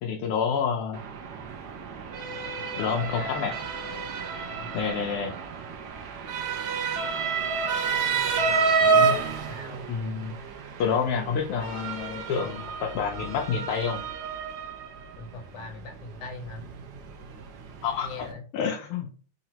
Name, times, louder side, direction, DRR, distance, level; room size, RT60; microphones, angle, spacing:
voice 1, 0.0-1.0 2.8-3.5 4.7-5.3 9.9-10.4 10.8-14.0 17.8-18.1 18.5-19.1, left 6 dB, 85° left, 1 dB, 1.5 m, -28 dB
Motor vehicle (road) / Siren, 0.9-18.3, right 5 dB, 65° right, 1.0 m, -30 dB
voice 2, 3.0-3.5 4.6-5.0 9.4-9.9 15.2-16.7 18.0-18.4, left 3 dB, 65° left, 1 dB, 1.7 m, -41 dB
4.1 x 2.9 x 2.8 m, 0.40 s
omnidirectional pair, 2.4 m